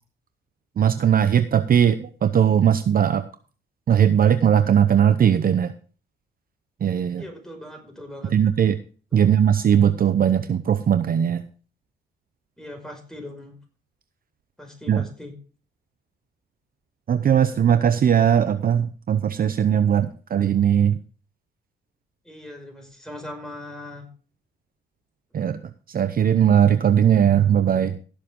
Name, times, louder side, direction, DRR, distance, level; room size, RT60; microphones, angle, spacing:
voice 1, 0.8-3.2 3.9-5.7 6.8-7.2 8.3-8.8 9.1-11.4 14.9-15.1 17.1-21.0 25.3-25.6 25.9-28.0, right 9 dB, 45° right, 11 dB, 0.8 m, -19 dB
voice 2, 7.2-8.3 9.1-9.3 12.6-13.6 14.6-15.3 22.3-24.1, left 1 dB, 5° left, 2 dB, 5.5 m, -39 dB
16.5 x 7.4 x 3.7 m, 0.38 s
cardioid pair, 90°, 20 cm